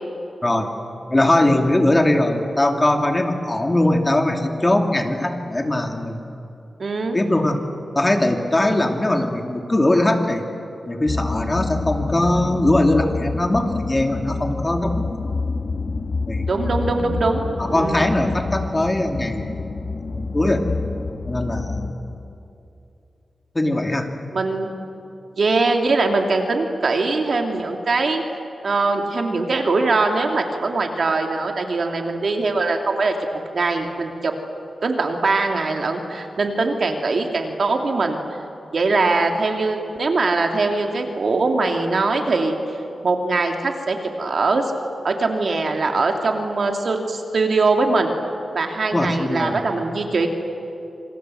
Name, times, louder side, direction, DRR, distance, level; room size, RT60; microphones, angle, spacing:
voice 1, 1.1-6.2 7.1-7.6 7.9-10.4 10.9-15.3 16.3-16.5 16.9-17.1 17.6-19.5 20.1-20.6 21.3-22.1 23.5-24.1 48.9-49.6, left 1 dB, 20° left, 4 dB, 2.7 m, -20 dB
voice 2, 6.8-7.2 16.5-18.1 24.3-24.7 25.4-28.2 28.6-34.3 34.8-38.2 38.7-42.6 43.0-44.7 45.0-48.1 48.5-50.3, right 3 dB, 60° right, 3 dB, 3.0 m, -22 dB
sound 1, 11.1-21.9, left 3 dB, 50° left, 1.9 m, -28 dB
27.5 x 26.0 x 8.0 m, 2.8 s
wide cardioid pair, 95°, 0 cm